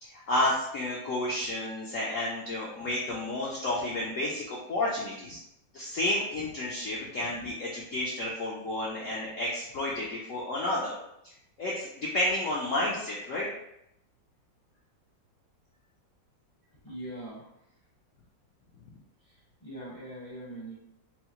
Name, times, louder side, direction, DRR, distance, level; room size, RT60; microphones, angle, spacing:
voice 1, 0.0-5.4 5.7-10.9 11.6-13.5, left 1 dB, 70° left, -5 dB, 0.7 m, -31 dB
voice 2, 16.8-17.5 19.2-20.7, right 1 dB, 30° left, -7 dB, 0.6 m, -42 dB
4.5 x 2.0 x 2.9 m, 0.80 s
omnidirectional pair, 2.0 m